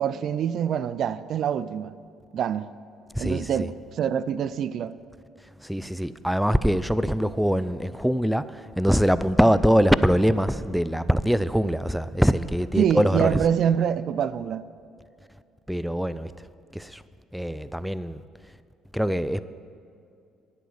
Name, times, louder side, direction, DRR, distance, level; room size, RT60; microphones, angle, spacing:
voice 1, 0.0-1.9 2.3-2.7 3.2-4.9 12.8-14.6, right 8 dB, 60° right, 0.4 m, -25 dB
voice 2, 3.1-3.7 5.6-13.5 15.7-16.3 16.7-17.0 17.3-18.2 18.9-19.4, equal, ahead, 0.4 m, -23 dB
11.5 x 10.5 x 6.4 m
supercardioid pair, 80°, 0 cm